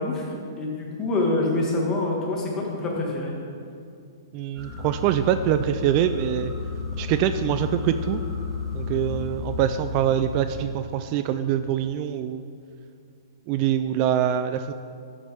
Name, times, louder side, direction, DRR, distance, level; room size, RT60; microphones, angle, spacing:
voice 1, 0.0-3.4, left 2 dB, 25° left, -2 dB, 1.8 m, -26 dB
voice 2, 4.3-6.5 7.0-8.2 8.7-12.5 13.5-14.7, right 10 dB, 40° right, 10 dB, 0.3 m, -24 dB
sound 1, 4.5-10.6, left 4 dB, ahead, 1.7 m, -32 dB
12.5 x 5.2 x 3.5 m, 2.4 s
hypercardioid pair, 125°, 2 cm